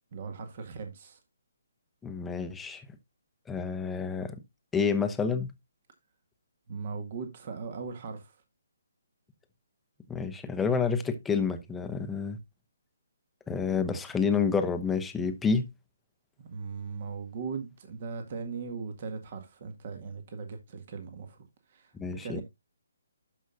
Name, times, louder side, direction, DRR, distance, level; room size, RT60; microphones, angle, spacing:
voice 1, 0.1-1.2 6.7-8.3 16.5-21.4 21.7-22.4, right 5 dB, 45° right, 1.8 m, -39 dB
voice 2, 2.0-2.8 3.5-4.4 4.7-5.5 10.1-12.4 13.5-15.6 21.9-22.4, left 5 dB, 10° left, 0.8 m, -29 dB
12.0 x 5.5 x 2.5 m
figure-of-eight pair, 145°, 0 cm